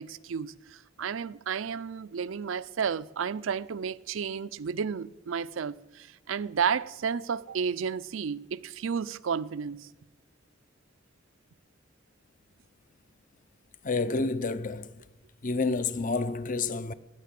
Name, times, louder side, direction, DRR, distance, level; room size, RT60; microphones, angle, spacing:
voice 1, 0.0-9.9, right 6 dB, 75° right, 0.5 m, -32 dB
voice 2, 13.8-15.1 15.4-16.9, left 3 dB, 40° left, 0.6 m, -29 dB
19.0 x 6.7 x 8.3 m
head